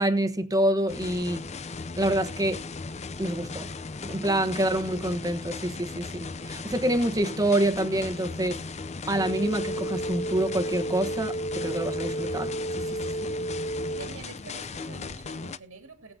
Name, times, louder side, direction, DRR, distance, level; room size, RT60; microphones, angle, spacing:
voice 1, 0.0-1.4 2.0-2.6 3.2-3.7 4.0-8.6 9.1-13.3, right 1 dB, 15° right, 1.1 m, -27 dB
sound 1, 0.9-15.6, left 4 dB, 30° left, 0.5 m, -37 dB
voice 2, 4.5-5.0 14.0-16.1, right 3 dB, 70° right, 2.0 m, -46 dB
sound 2, 9.1-14.1, right 1 dB, 15° left, 2.4 m, -32 dB
21.5 x 7.8 x 2.8 m
head